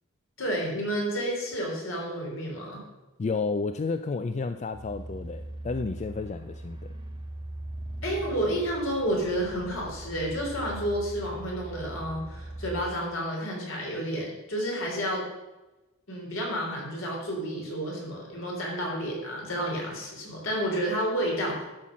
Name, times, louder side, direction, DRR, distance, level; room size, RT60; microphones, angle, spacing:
voice 1, 0.4-2.8 8.0-15.2 16.1-21.6, equal, 70° left, -2 dB, 3.6 m, -30 dB
voice 2, 3.2-7.0, left 4 dB, 35° left, 9 dB, 0.3 m, -31 dB
sound 1, 4.7-12.8, right 1 dB, 20° right, 1.4 m, -40 dB
12.0 x 5.9 x 6.1 m, 1.1 s
head